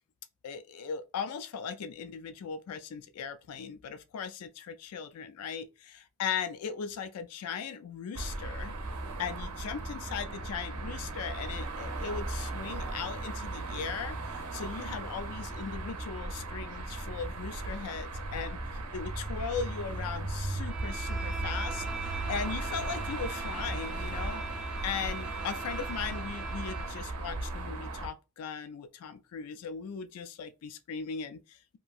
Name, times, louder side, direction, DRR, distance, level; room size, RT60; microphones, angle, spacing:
voice 1, 0.4-8.7 9.2-24.4 24.8-31.8, left 6 dB, 85° left, 0.4 m, -38 dB
sound 1, 8.1-28.1, right 2 dB, 85° right, 0.6 m, -37 dB
Bowed string instrument, 20.6-27.0, right 3 dB, 5° right, 0.5 m, -42 dB
2.9 x 2.5 x 2.3 m
head